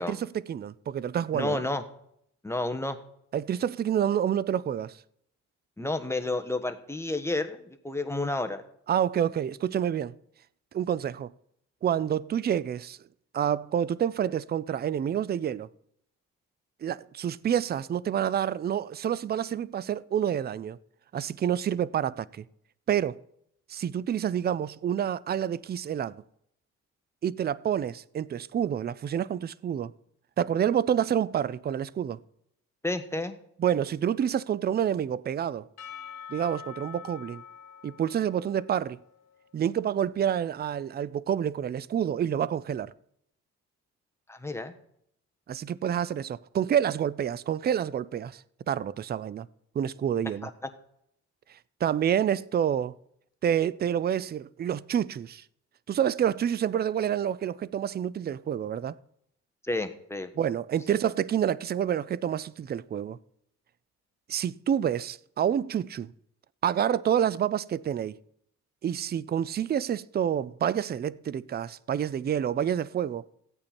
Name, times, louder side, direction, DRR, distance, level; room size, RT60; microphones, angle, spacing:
voice 1, 0.0-1.6 3.3-5.0 8.9-10.2 10.7-11.3 11.8-13.0 13.3-15.7 16.8-20.8 21.1-22.4 22.9-23.2 23.7-26.2 27.2-29.9 30.4-32.2 33.6-35.7 36.3-37.4 37.8-39.0 39.5-42.9 45.5-49.5 49.7-50.5 51.5-52.9 53.4-55.4 55.9-59.0 60.4-63.2 64.3-66.1 66.6-68.2 68.8-73.2, right 9 dB, 35° right, 0.4 m, -28 dB
voice 2, 1.3-1.8 2.4-3.0 5.8-8.6 32.8-33.3 44.3-44.7 50.4-50.5 59.6-60.3, left 2 dB, 10° left, 1.2 m, -30 dB
Percussion / Church bell, 35.8-40.1, left 7 dB, 60° left, 1.5 m, -46 dB
15.0 x 8.7 x 4.3 m
cardioid pair, 90°, 30 cm